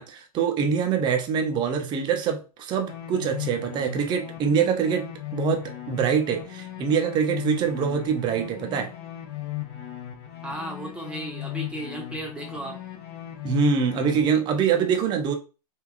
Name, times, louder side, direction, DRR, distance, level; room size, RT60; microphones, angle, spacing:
voice 1, 0.0-8.9 13.4-15.3, right 7 dB, 20° right, 0.5 m, -24 dB
sound 1, 2.9-14.2, left 14 dB, 45° left, 0.7 m, -37 dB
voice 2, 10.4-12.8, right 1 dB, 5° right, 0.9 m, -35 dB
3.3 x 2.3 x 2.4 m
hypercardioid pair, 110°, 20 cm